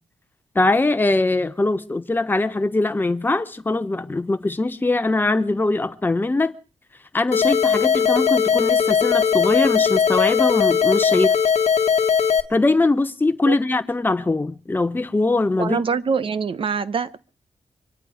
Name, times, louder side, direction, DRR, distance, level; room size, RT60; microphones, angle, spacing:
voice 1, 0.5-6.5 7.1-11.3 12.5-15.8, left 2 dB, 20° left, 1.0 m, -21 dB
sound 1, 7.3-12.4, left 7 dB, 75° left, 1.2 m, -19 dB
voice 2, 15.6-17.2, right 5 dB, 55° right, 0.8 m, -24 dB
25.0 x 9.9 x 4.9 m
wide cardioid pair, 145°, 11 cm